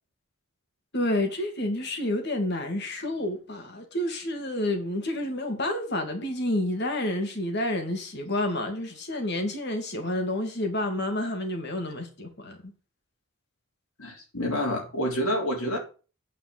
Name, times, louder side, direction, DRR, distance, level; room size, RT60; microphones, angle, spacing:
voice 1, 0.9-12.6, left 1 dB, 50° left, 2.5 m, -29 dB
voice 2, 14.0-15.8, equal, 85° left, 3.6 m, -28 dB
9.2 x 5.0 x 7.9 m
head